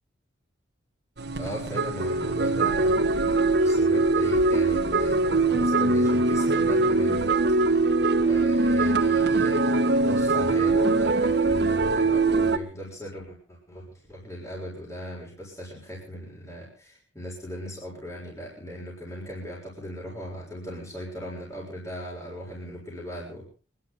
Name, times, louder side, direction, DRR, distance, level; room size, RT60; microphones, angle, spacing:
sound 1, 1.2-12.6, right 3 dB, 55° right, 1.4 m, -22 dB
voice 1, 1.3-7.9 8.3-23.5, equal, 15° left, -4 dB, 6.9 m, -38 dB
27.0 x 11.5 x 4.1 m, 0.36 s
head